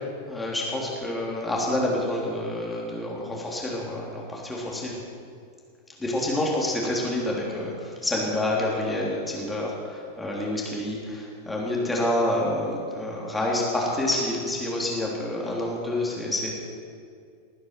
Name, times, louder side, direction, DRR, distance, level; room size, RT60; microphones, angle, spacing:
voice 1, 0.3-5.0 6.0-16.5, left 1 dB, 10° left, -3 dB, 3.3 m, -28 dB
20.0 x 9.5 x 6.0 m, 2.3 s
figure-of-eight pair, 90°, 0 cm